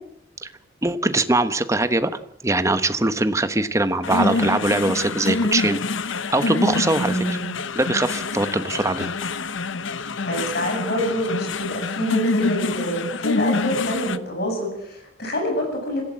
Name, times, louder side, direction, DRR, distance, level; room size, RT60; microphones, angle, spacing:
voice 1, 0.8-2.1 2.4-5.8 6.3-7.4 7.7-9.1, right 2 dB, 15° right, 10 dB, 1.1 m, -22 dB
sound 1, 4.0-14.2, left 3 dB, 70° left, 0.9 m, -26 dB
voice 2, 6.9-7.5 10.2-16.0, equal, 50° left, 3 dB, 8.0 m, -26 dB
25.5 x 16.0 x 7.6 m, 0.71 s
head